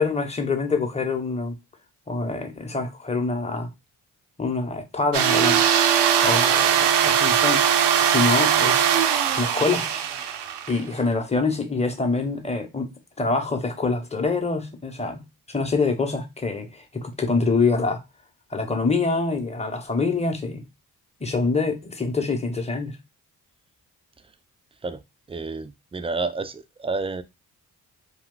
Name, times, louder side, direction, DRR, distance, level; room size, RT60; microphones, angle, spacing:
voice 1, 0.0-1.6 2.1-3.7 4.4-5.6 6.2-7.7 8.0-8.9 9.4-9.9 10.7-12.9 13.2-18.0 18.5-20.6 21.2-23.0, left 3 dB, 15° left, 0.9 m, -25 dB
sound 1, 5.1-10.8, right 9 dB, 70° right, 0.6 m, -20 dB
voice 2, 25.3-27.2, right 3 dB, 15° right, 0.3 m, -30 dB
2.4 x 2.3 x 3.7 m
supercardioid pair, 50°, 42 cm